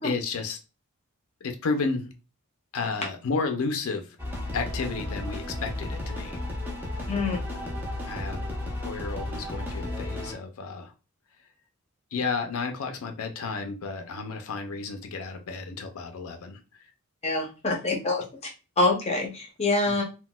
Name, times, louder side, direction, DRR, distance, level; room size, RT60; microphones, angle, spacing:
voice 1, 0.0-0.6 1.4-2.1 2.7-4.2 4.5-6.4 7.5-7.8 8.1-8.5 8.8-10.9 12.1-16.9 19.9-20.0, left 4 dB, 70° left, 6 dB, 0.4 m, -32 dB
sound 1, 4.2-10.3, left 1 dB, 10° right, 0.6 m, -33 dB
voice 2, 7.1-7.4 17.2-18.2 18.8-20.0, left 2 dB, 30° left, 1 dB, 0.6 m, -25 dB
3.8 x 2.2 x 2.2 m, 0.31 s
head